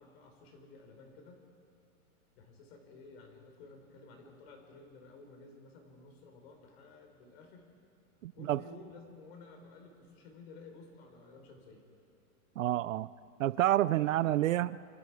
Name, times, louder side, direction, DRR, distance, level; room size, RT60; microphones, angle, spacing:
voice 1, 0.0-1.4 2.4-7.7 8.3-11.8 13.9-14.6, left 3 dB, 45° left, 3 dB, 4.4 m, -53 dB
voice 2, 8.2-8.6 12.6-13.1 13.4-14.8, right 13 dB, 65° right, 18 dB, 0.5 m, -29 dB
27.5 x 25.5 x 4.8 m, 2.6 s
supercardioid pair, 170°, 43 cm